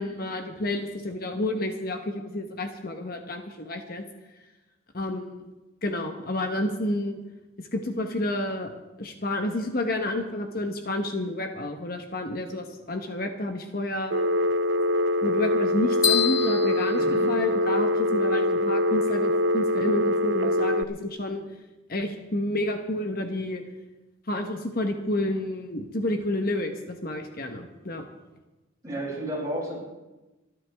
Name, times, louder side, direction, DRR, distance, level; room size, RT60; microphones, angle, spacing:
voice 1, 0.0-4.0 4.9-5.4 5.8-7.2 7.6-8.7 9.0-14.1 15.2-21.4 21.9-23.6 24.3-28.1, left 1 dB, 50° left, 4 dB, 1.2 m, -30 dB
Telephone, 14.1-20.8, left 1 dB, 70° right, 0.6 m, -24 dB
sound 1, 16.0-18.0, left 9 dB, 20° left, 1.4 m, -28 dB
voice 2, 28.8-29.8, right 1 dB, 20° right, -6 dB, 7.2 m, -32 dB
27.5 x 11.5 x 3.5 m, 1.1 s
head